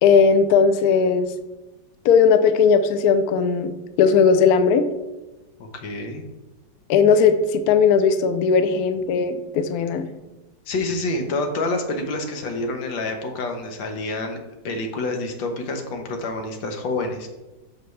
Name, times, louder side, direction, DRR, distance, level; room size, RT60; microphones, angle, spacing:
voice 1, 0.0-1.3 2.0-3.7 4.0-4.9 6.9-10.1, left 6 dB, 70° left, 10 dB, 1.0 m, -17 dB
voice 2, 5.6-6.2 10.7-14.4 14.6-17.3, left 2 dB, 85° left, 4 dB, 1.8 m, -27 dB
12.5 x 4.8 x 3.2 m, 1.0 s
omnidirectional pair, 2.0 m